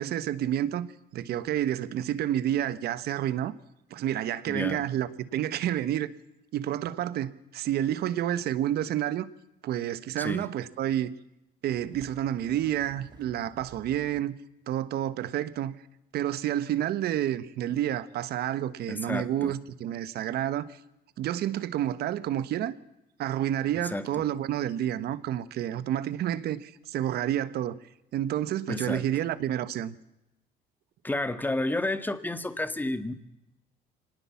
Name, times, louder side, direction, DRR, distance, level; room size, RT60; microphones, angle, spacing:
voice 1, 0.0-3.5 3.9-6.1 6.5-9.3 9.6-11.1 11.6-14.3 14.7-15.7 16.1-20.8 21.2-22.7 23.2-27.8 28.1-29.9, right 11 dB, 70° right, 1.3 m, -29 dB
voice 2, 4.5-4.9 10.2-10.5 18.9-19.6 23.9-24.3 28.7-29.0 31.0-33.1, left 2 dB, 10° left, 1.6 m, -31 dB
sound 1, 11.7-14.2, right 4 dB, 25° right, 2.1 m, -54 dB
24.5 x 19.0 x 7.2 m
cardioid pair, 110°, 17 cm